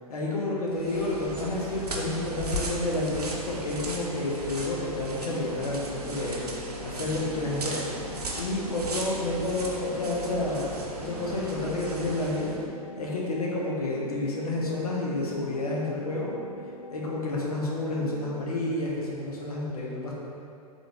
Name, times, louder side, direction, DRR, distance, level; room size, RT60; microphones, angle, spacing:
voice 1, 0.1-7.8 8.3-10.7 10.9-12.6 13.0-16.3 16.9-20.1, left 2 dB, 75° left, -3 dB, 1.0 m, -30 dB
barefoot steps on tile, 0.7-12.6, right 1 dB, 80° right, 0.6 m, -36 dB
sound 1, 5.1-18.5, left 1 dB, 90° left, 0.6 m, -44 dB
3.6 x 3.5 x 3.7 m, 2.4 s
figure-of-eight pair, 105°, 20 cm